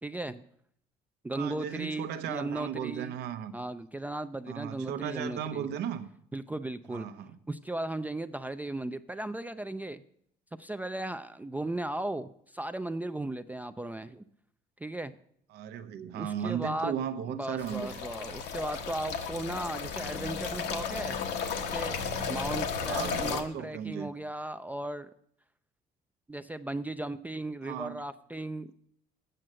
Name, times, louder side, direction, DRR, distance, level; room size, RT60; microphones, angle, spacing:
voice 1, 0.0-0.4 1.2-3.2 3.5-5.7 6.3-7.1 7.5-10.0 10.6-14.2 14.8-15.2 16.1-16.9 17.3-21.2 21.7-22.0 22.3-25.1 26.3-28.7, right 1 dB, 10° right, 0.3 m, -36 dB
voice 2, 1.4-3.5 4.5-6.1 6.9-7.4 15.5-18.0 22.9-24.1 27.6-28.0, right 9 dB, 80° right, 0.8 m, -36 dB
sound 1, 17.6-23.4, left 6 dB, 85° left, 1.1 m, -34 dB
7.8 x 6.6 x 7.5 m
cardioid pair, 110°, 17 cm